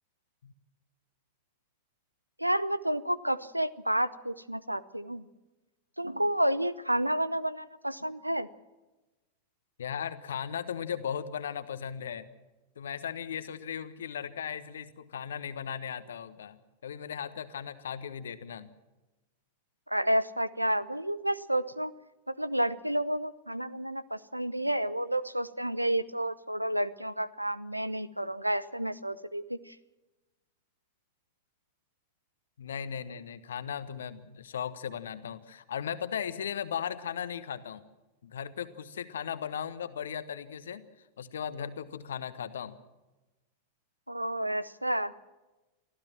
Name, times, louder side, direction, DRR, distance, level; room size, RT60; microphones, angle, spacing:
voice 1, 2.4-5.3 6.0-8.5 19.9-21.9 22.3-29.8 44.1-45.1, right 1 dB, 90° right, 19 dB, 0.8 m, -30 dB
voice 2, 9.8-12.3 12.8-18.7 32.6-37.8 38.2-40.8 41.2-42.8, left 8 dB, 65° left, 13 dB, 1.3 m, -37 dB
24.0 x 15.0 x 7.5 m, 1.1 s
figure-of-eight pair, 90°, 0 cm